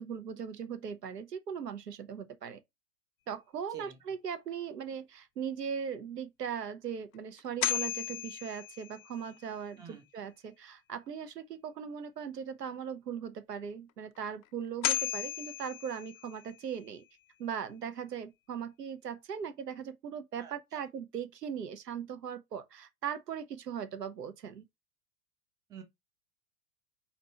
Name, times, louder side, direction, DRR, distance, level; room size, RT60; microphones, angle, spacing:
voice 1, 0.0-2.6 3.3-17.0 17.4-24.6, right 7 dB, 75° right, 0.9 m, -39 dB
sound 1, 7.4-9.5 14.4-14.5 14.8-16.7, left 11 dB, 55° left, 0.6 m, -35 dB
voice 2, 20.4-20.8 25.7-25.8, right 6 dB, 10° right, 0.5 m, -49 dB
4.2 x 2.9 x 4.3 m
figure-of-eight pair, 100°, 50 cm